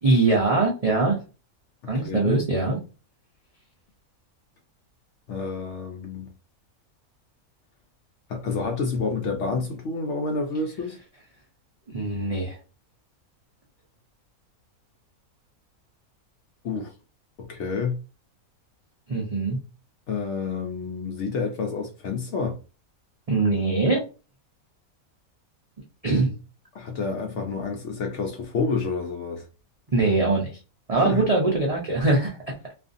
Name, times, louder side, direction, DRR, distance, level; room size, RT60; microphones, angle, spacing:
voice 1, 0.0-1.2 1.9-2.8 11.9-12.6 19.1-19.6 23.3-24.0 26.0-26.3 29.9-30.6 30.9-32.4, right 3 dB, 60° right, 0.3 m, -22 dB
voice 2, 1.8-2.3 5.3-6.3 8.3-11.0 16.6-16.9 17.4-18.0 20.1-22.6 26.7-29.5 31.0-31.2, left 4 dB, 65° left, 0.7 m, -29 dB
2.5 x 2.4 x 2.5 m
omnidirectional pair, 1.5 m